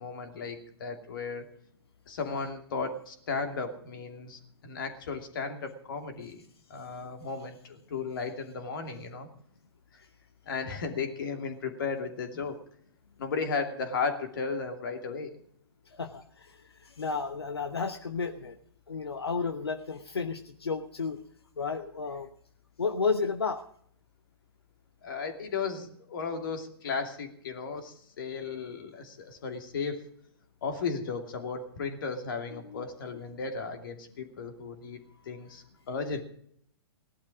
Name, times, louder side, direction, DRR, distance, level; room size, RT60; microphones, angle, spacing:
voice 1, 0.0-1.5 2.1-6.4 6.7-9.3 9.9-10.0 10.5-12.6 13.2-15.4 25.0-30.0 30.6-36.2, left 5 dB, 55° left, 5 dB, 2.7 m, -35 dB
voice 2, 15.9-18.6 18.9-21.2 21.6-22.3 22.8-23.6 32.5-32.8, left 5 dB, 75° left, 8 dB, 1.0 m, -32 dB
18.0 x 12.0 x 4.9 m, 0.64 s
figure-of-eight pair, 110°, 13 cm